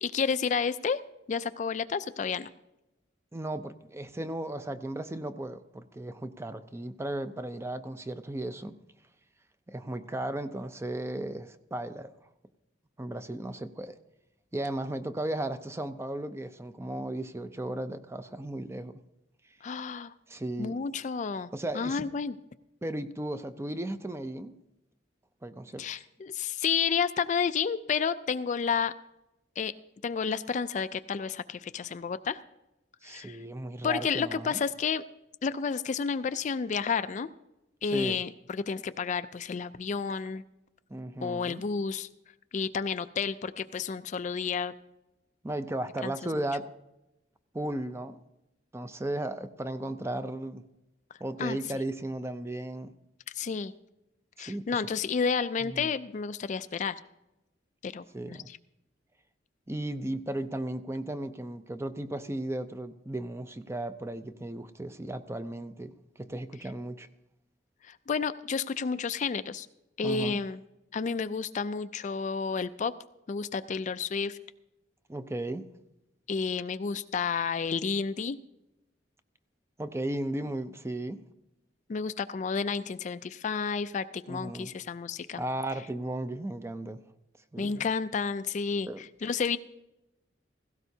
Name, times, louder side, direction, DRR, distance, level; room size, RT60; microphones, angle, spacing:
voice 1, 0.0-1.0 1.3-2.5 19.6-20.1 20.6-21.5 21.7-22.3 25.8-28.9 29.6-29.7 30.0-32.4 33.0-33.4 33.8-35.0 35.4-37.3 37.8-40.4 41.2-42.1 42.5-44.7 46.0-46.5 51.4-51.6 53.3-53.7 54.4-57.0 57.8-58.6 67.9-69.7 70.0-70.6 70.9-72.9 73.3-74.4 76.3-78.4 81.9-85.4 87.6-89.6, left 5 dB, 40° left, 0.4 m, -31 dB
voice 2, 3.3-8.8 9.7-12.1 13.0-14.0 14.5-19.0 20.3-20.8 21.5-22.1 22.8-24.6 25.4-25.8 33.0-34.6 37.8-38.2 40.9-41.6 45.4-46.7 47.5-48.2 48.7-50.6 51.2-52.9 54.4-54.9 55.6-55.9 58.1-58.5 59.7-67.1 70.0-70.4 75.1-75.7 79.8-81.2 84.3-84.7 85.4-87.0 87.5-87.9 88.9-89.0, right 1 dB, 15° right, 0.5 m, -35 dB
17.0 x 16.0 x 2.7 m
head